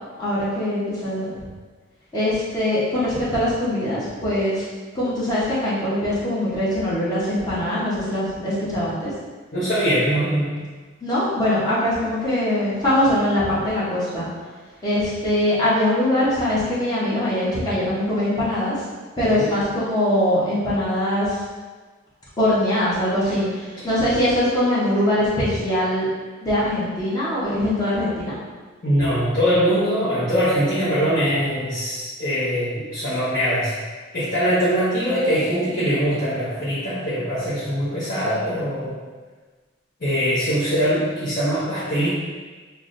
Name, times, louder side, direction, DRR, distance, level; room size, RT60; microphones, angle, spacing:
voice 1, 0.2-1.3 2.1-4.6 4.9-9.1 11.0-14.3 14.8-18.7 19.2-21.4 22.4-26.1 26.4-28.3, left 1 dB, 20° left, -9 dB, 0.8 m, -22 dB
voice 2, 9.5-10.5 19.2-19.5 28.8-33.7 34.1-39.0 40.0-42.1, equal, 45° left, -12 dB, 0.8 m, -22 dB
5.5 x 2.1 x 2.5 m, 1.4 s
head